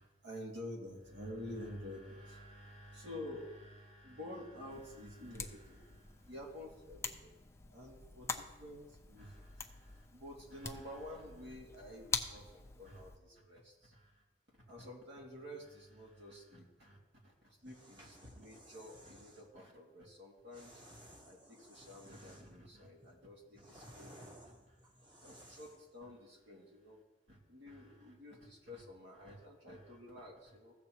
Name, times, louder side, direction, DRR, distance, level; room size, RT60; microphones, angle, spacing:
voice 1, 0.0-7.3 7.7-14.2 14.7-17.0 17.2-20.8 21.2-24.8 25.2-27.0 27.3-30.7, left 1 dB, 70° right, -2 dB, 2.6 m, -50 dB
sound 1, 4.7-13.2, left 4 dB, 15° left, 0.6 m, -45 dB
sound 2, 17.6-19.5 20.5-22.6 23.0-25.9, equal, 25° right, 1.4 m, -57 dB
16.0 x 6.8 x 3.0 m, 1.1 s
head